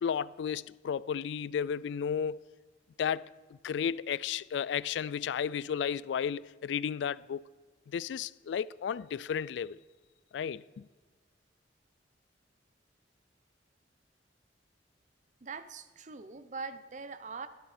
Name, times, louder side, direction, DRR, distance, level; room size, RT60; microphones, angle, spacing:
voice 1, 0.0-2.4 3.0-3.3 3.6-7.4 7.9-9.8 10.3-10.9, left 7 dB, 75° left, 0.3 m, -33 dB
voice 2, 15.4-17.5, right 4 dB, 45° right, 0.7 m, -42 dB
12.5 x 12.0 x 4.3 m
head